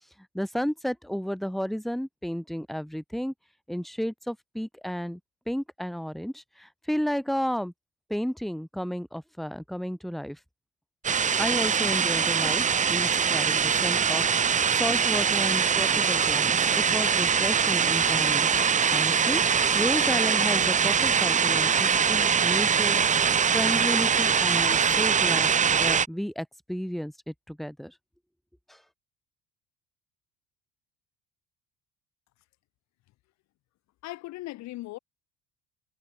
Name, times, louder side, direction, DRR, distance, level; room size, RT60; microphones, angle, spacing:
voice 1, 0.3-3.3 3.7-5.2 5.5-7.7 8.1-10.4 11.4-19.4 19.7-23.0 23.5-27.9 28.7-28.8, equal, ahead, 4.4 m, -32 dB
sound 1, 11.0-26.1, right 6 dB, 25° right, 1.1 m, -23 dB
voice 2, 34.0-35.0, left 17 dB, 65° left, 3.7 m, -38 dB
cardioid pair, 125°, 29 cm